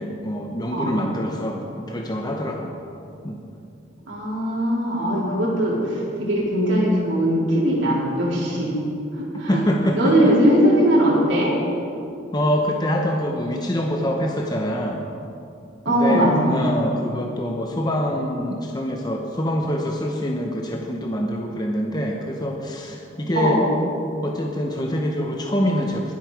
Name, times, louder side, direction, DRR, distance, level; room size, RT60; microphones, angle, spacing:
voice 1, 0.0-2.8 3.2-3.4 9.5-10.1 12.3-15.0 15.9-23.6 24.2-26.1, equal, 20° left, 1 dB, 0.9 m, -25 dB
voice 2, 4.1-8.7 9.1-9.6 9.9-11.5 15.9-16.8 23.3-23.6, equal, 75° right, -6 dB, 3.6 m, -20 dB
20.5 x 8.1 x 4.8 m, 2.6 s
head